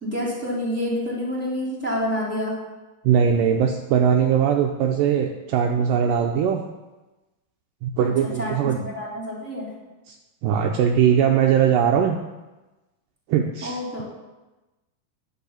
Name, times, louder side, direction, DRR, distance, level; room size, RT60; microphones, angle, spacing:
voice 1, 0.0-2.5 8.0-8.1 8.4-9.7 13.6-14.0, left 1 dB, 5° right, -5 dB, 2.5 m, -28 dB
voice 2, 3.1-6.6 7.8-8.9 10.1-10.2 10.4-12.2 13.3-14.0, right 8 dB, 80° right, 3 dB, 2.1 m, -20 dB
10.5 x 4.8 x 7.2 m, 1.1 s
omnidirectional pair, 4.3 m